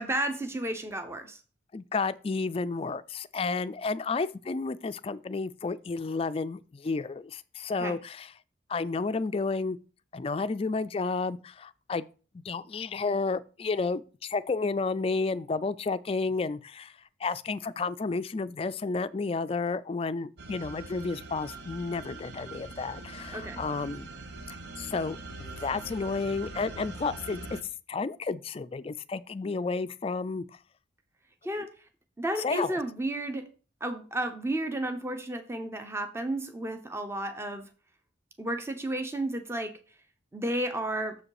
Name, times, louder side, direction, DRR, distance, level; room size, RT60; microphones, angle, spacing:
voice 1, 0.0-1.4 7.8-8.0 23.3-23.6 31.4-31.7 32.2-33.5 33.8-37.7 38.4-39.7 40.3-41.2, right 1 dB, 15° right, 0.7 m, -32 dB
voice 2, 1.7-8.3 8.7-9.8 10.1-12.0 12.3-16.9 17.2-24.1 24.5-27.6 27.9-30.4 31.6-31.7 32.4-32.8, left 4 dB, 30° left, 0.3 m, -31 dB
sound 1, 20.4-27.6, right 2 dB, 60° right, 1.0 m, -43 dB
7.0 x 5.0 x 4.8 m
head